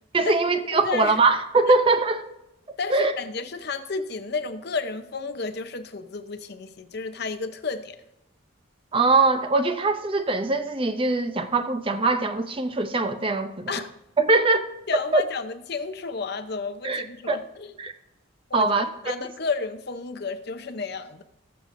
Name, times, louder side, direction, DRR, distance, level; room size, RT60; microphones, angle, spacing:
voice 1, 0.1-2.3 2.9-3.1 8.9-13.7 14.2-14.7 15.1-15.2 16.8-17.4 17.8-17.9 18.5-18.9, right 3 dB, 25° right, 0.5 m, -22 dB
voice 2, 0.7-1.2 1.7-1.8 2.8-8.0 13.7-13.9 14.9-17.7 18.5-21.2, left 4 dB, 55° left, 0.7 m, -32 dB
19.5 x 6.7 x 2.6 m
head